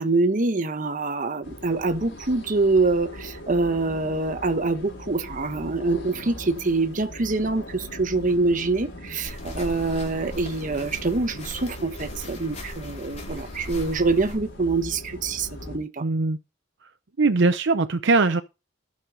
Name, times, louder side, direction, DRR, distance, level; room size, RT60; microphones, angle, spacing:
voice 1, 0.0-16.0, right 3 dB, 45° right, 1.1 m, -25 dB
sound 1, 1.4-15.8, left 1 dB, 75° left, 4.3 m, -40 dB
sound 2, 9.2-14.4, left 1 dB, 35° left, 4.6 m, -39 dB
voice 2, 16.0-16.4 17.2-18.4, right 3 dB, 65° right, 0.7 m, -20 dB
14.5 x 6.5 x 4.0 m
head